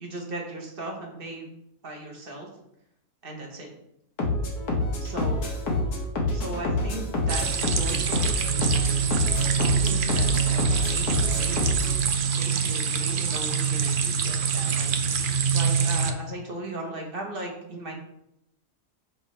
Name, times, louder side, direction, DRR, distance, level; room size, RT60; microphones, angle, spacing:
voice 1, 0.0-1.5 1.8-2.5 3.2-3.7 5.0-5.4 6.3-8.4 9.4-11.7 12.4-14.9 15.5-17.9, right 2 dB, 40° right, 0 dB, 1.4 m, -37 dB
sound 1, 4.2-12.0, left 2 dB, 80° left, 1.8 m, -27 dB
sound 2, 7.3-16.1, right 6 dB, 80° right, 0.4 m, -25 dB
6.1 x 5.6 x 3.3 m, 0.79 s
omnidirectional pair, 1.6 m